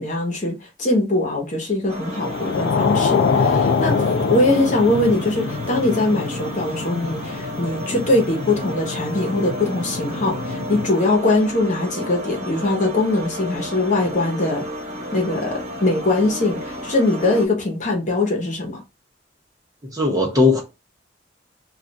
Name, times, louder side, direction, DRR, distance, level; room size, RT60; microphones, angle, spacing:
voice 1, 0.0-4.0 4.3-14.6 15.1-18.8, left 2 dB, 45° left, 1.0 m, -21 dB
sound 1, 1.9-17.5, equal, 45° right, 1.4 m, -32 dB
sound 2, 2.2-10.9, left 5 dB, 75° left, 0.4 m, -25 dB
voice 2, 19.8-20.6, left 3 dB, 20° right, 0.8 m, -18 dB
2.5 x 2.4 x 4.0 m
head